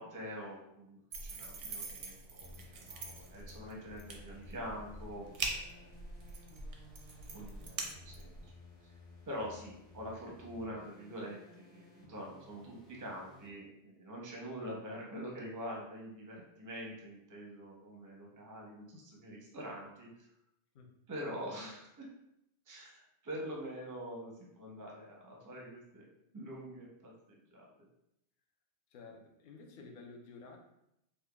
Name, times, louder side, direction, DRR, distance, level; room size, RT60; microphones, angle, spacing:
voice 1, 0.0-5.9 7.3-8.3 8.8-8.9 9.3-20.1 21.1-22.1 22.7-26.1 26.3-27.6, equal, 25° right, -2 dB, 0.4 m, -45 dB
sound 1, 1.1-8.5, right 3 dB, 75° right, 0.9 m, -44 dB
sound 2, 2.4-13.5, left 3 dB, 70° left, 1.2 m, -57 dB
voice 2, 28.9-30.6, left 4 dB, 55° left, 1 dB, 0.6 m, -52 dB
5.0 x 2.1 x 2.3 m, 0.80 s
omnidirectional pair, 1.3 m